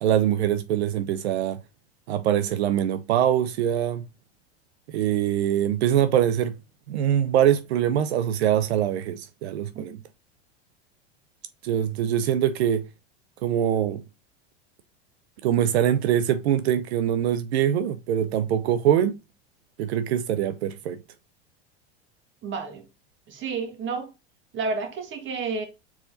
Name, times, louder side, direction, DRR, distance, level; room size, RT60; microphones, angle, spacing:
voice 1, 0.0-1.6 2.1-4.1 4.9-6.5 6.9-10.0 11.6-12.9 13.4-14.0 15.4-19.2 19.8-21.0, right 10 dB, 90° right, 0.5 m, -23 dB
voice 2, 22.4-22.8 23.3-24.1 24.5-25.6, right 4 dB, 35° right, 1.6 m, -31 dB
4.8 x 4.1 x 2.6 m
supercardioid pair, 115°, 32 cm